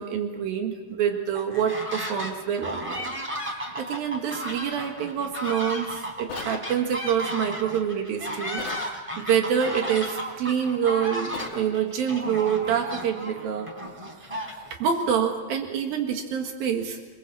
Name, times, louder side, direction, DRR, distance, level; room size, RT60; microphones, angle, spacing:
voice 1, 0.0-3.1 3.7-13.7 14.8-17.0, right 8 dB, 85° right, 3 dB, 3.5 m, -27 dB
sound 1, 1.3-2.3 2.6-14.9, equal, 10° right, 3.3 m, -34 dB
sound 2, 6.3-6.6 8.6-8.9 11.3-11.6, left 6 dB, 50° left, 2.7 m, -36 dB
27.0 x 22.0 x 7.6 m, 1.3 s
omnidirectional pair, 4.1 m